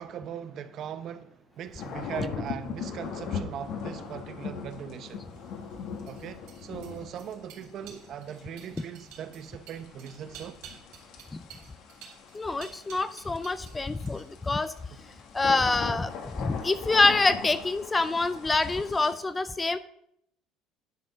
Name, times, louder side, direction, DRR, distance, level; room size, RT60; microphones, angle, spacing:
voice 1, 0.0-5.2 6.1-10.6, right 9 dB, 45° right, 0.8 m, -40 dB
sound 1, 1.8-19.1, left 6 dB, 55° left, 1.6 m, -40 dB
sound 2, 5.2-13.8 14.1-14.5, right 8 dB, 85° right, 3.0 m, -51 dB
voice 2, 12.3-14.7 15.3-16.1 16.4-19.8, left 3 dB, 15° left, 0.4 m, -26 dB
10.5 x 5.2 x 6.2 m
cardioid pair, 145°, 0 cm